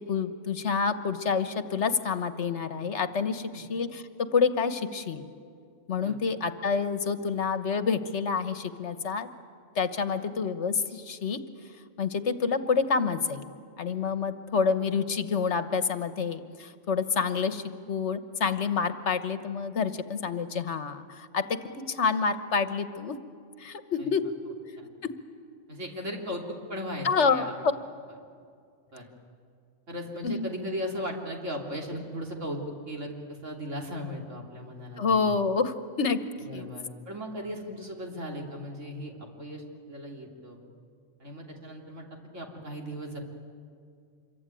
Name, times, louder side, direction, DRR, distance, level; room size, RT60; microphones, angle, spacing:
voice 1, 0.1-4.0 4.3-5.3 5.9-9.3 9.7-11.4 12.0-13.4 13.8-21.6 21.9-23.2 23.6-24.3 25.0-25.1 27.0-27.4 30.2-30.5 35.0-36.2 36.5-36.7, left 5 dB, 65° left, 10 dB, 1.4 m, -28 dB
voice 2, 24.5-24.9 25.7-27.5 28.9-29.1 29.9-35.1 36.4-40.6 41.2-43.2, equal, 75° right, 0 dB, 3.7 m, -37 dB
26.5 x 23.5 x 9.2 m, 2.2 s
omnidirectional pair, 1.3 m